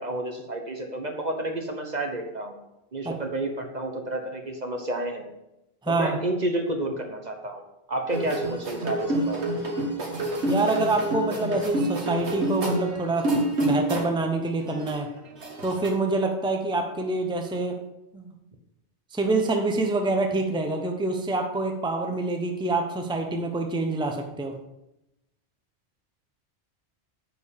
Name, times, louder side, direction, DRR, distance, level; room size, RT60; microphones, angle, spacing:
voice 1, 0.0-2.6 2.9-5.3 5.9-7.6 7.9-9.5, right 1 dB, 40° right, 4 dB, 1.1 m, -30 dB
voice 2, 5.8-6.2 10.4-13.3 13.6-15.1 15.6-17.8 18.1-18.3 19.1-24.5, right 2 dB, 5° right, 4 dB, 0.9 m, -26 dB
sound 1, 8.1-14.3 14.6-15.9, right 1 dB, 75° right, 2.0 m, -27 dB
9.6 x 4.7 x 7.2 m, 0.90 s
omnidirectional pair, 1.2 m